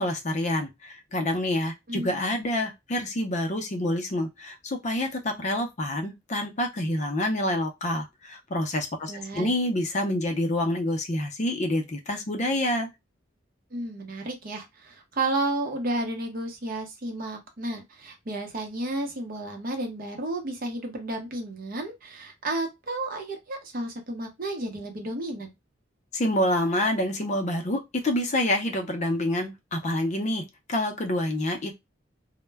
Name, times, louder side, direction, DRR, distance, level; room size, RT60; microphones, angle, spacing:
voice 1, 0.0-12.9 26.1-31.7, left 1 dB, 40° left, 0.5 m, -27 dB
voice 2, 9.1-9.5 13.7-25.5, right 2 dB, 50° right, 0.7 m, -32 dB
2.1 x 2.1 x 3.3 m
head